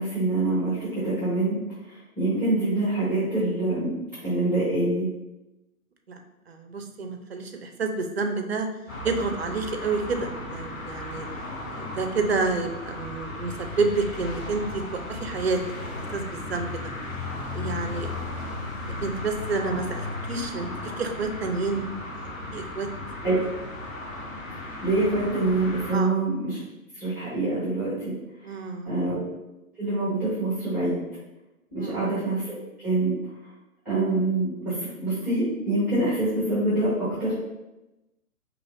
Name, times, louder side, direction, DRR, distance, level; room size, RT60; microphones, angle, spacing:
voice 1, 0.0-1.6 1.9-3.9 4.2-5.1 23.2-23.3 24.8-26.6 26.9-28.1 28.8-29.2 29.8-31.0 31.7-32.6 32.8-33.2 33.8-37.3, right 2 dB, 5° right, -9 dB, 1.2 m, -25 dB
voice 2, 6.5-8.7 9.0-11.3 11.7-15.6 16.1-16.8 17.5-18.1 18.8-21.9 22.2-22.9 23.2-23.3 25.9-26.1 28.4-29.0 31.8-32.0, right 4 dB, 45° right, 5 dB, 0.6 m, -29 dB
sound 1, 8.9-25.9, left 2 dB, 65° left, 1.1 m, -35 dB
4.7 x 3.1 x 2.6 m, 0.99 s
figure-of-eight pair, 125°, 44 cm